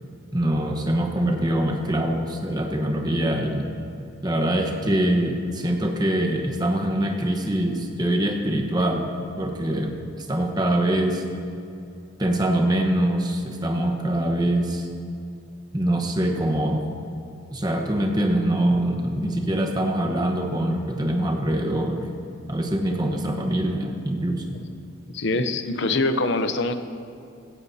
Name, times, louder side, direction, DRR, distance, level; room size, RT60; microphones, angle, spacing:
voice 1, 0.3-3.7 4.2-9.1 9.4-9.9 10.3-11.2 12.2-14.9 15.7-16.8 17.5-22.0 22.5-24.4, right 1 dB, 20° right, 2 dB, 1.1 m, -24 dB
voice 2, 25.1-26.7, left 2 dB, 55° left, 9 dB, 0.7 m, -24 dB
16.0 x 15.5 x 2.8 m, 2.5 s
head